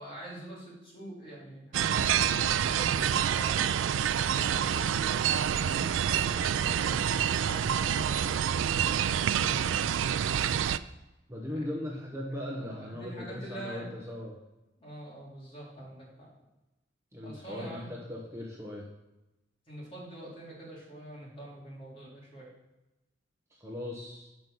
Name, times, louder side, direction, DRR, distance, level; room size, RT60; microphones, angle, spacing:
voice 1, 0.0-3.7 4.3-9.6 11.5-11.7 12.3-13.9 14.8-16.3 17.2-17.9 19.7-22.5, right 1 dB, 30° left, -5 dB, 3.4 m, -45 dB
sound 1, 1.7-10.8, right 9 dB, 75° right, 0.3 m, -27 dB
voice 2, 11.3-14.4 17.1-18.9 23.5-24.3, left 1 dB, 15° right, -3 dB, 1.1 m, -38 dB
7.6 x 5.4 x 6.3 m, 0.99 s
head